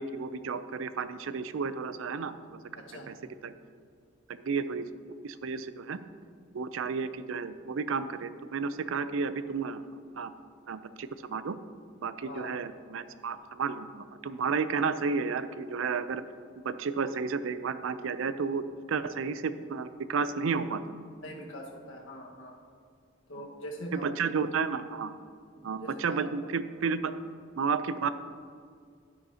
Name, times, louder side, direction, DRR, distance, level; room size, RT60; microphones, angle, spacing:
voice 1, 0.0-3.1 3.4-3.5 4.3-4.9 5.2-6.0 6.5-9.8 10.1-10.3 10.7-11.6 12.0-16.2 16.6-20.8 23.9-25.1 25.6-27.1 27.6-28.1, right 5 dB, 80° right, 12 dB, 0.5 m, -32 dB
voice 2, 2.7-3.1 12.2-12.5 21.2-22.5 23.3-24.1 25.5-26.5, equal, 75° left, -1 dB, 1.5 m, -43 dB
11.5 x 9.7 x 2.8 m, 2.2 s
head